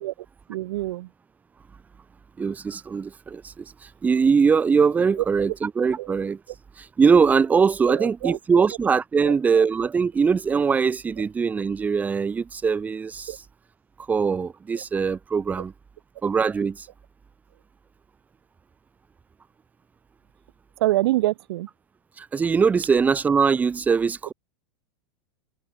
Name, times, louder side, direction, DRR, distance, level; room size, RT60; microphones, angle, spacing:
voice 1, 0.5-1.1 6.0-6.1 7.9-8.6 9.2-9.3 13.3-13.4 14.7-14.8 20.8-21.7, right 17 dB, 70° right, 0.4 m, -26 dB
voice 2, 2.4-6.4 6.8-13.4 14.1-15.7 16.2-16.9 22.2-24.3, right 5 dB, 10° right, 0.7 m, -22 dB
supercardioid pair, 145°, 13 cm